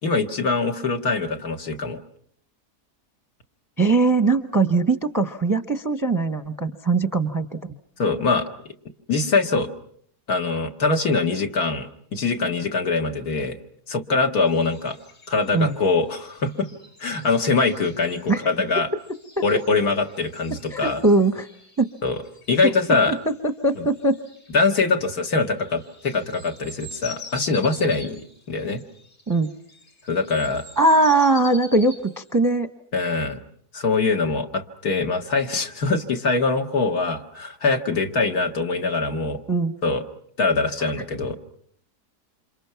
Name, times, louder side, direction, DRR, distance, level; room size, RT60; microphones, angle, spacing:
voice 1, 0.0-2.0 8.0-8.5 9.1-9.7 10.3-13.6 13.9-15.0 15.3-16.7 17.0-18.9 19.4-21.0 22.0-22.2 22.5-23.2 23.8-23.9 24.5-28.2 28.5-28.8 30.1-30.6 32.9-33.4 33.7-39.4 39.8-40.0 40.4-41.3, left 3 dB, 65° left, 4 dB, 2.2 m, -23 dB
voice 2, 3.8-7.5 15.5-15.8 18.3-18.4 19.4-19.5 20.7-21.5 21.8-21.9 22.6-22.7 23.1-23.2 23.4-24.2 29.3-29.5 30.8-32.7 39.5-39.7, right 3 dB, 15° right, 9 dB, 0.8 m, -20 dB
sound 1, 14.5-32.4, left 2 dB, 50° left, 4.2 m, -46 dB
29.0 x 27.0 x 5.8 m, 0.63 s
omnidirectional pair, 1.7 m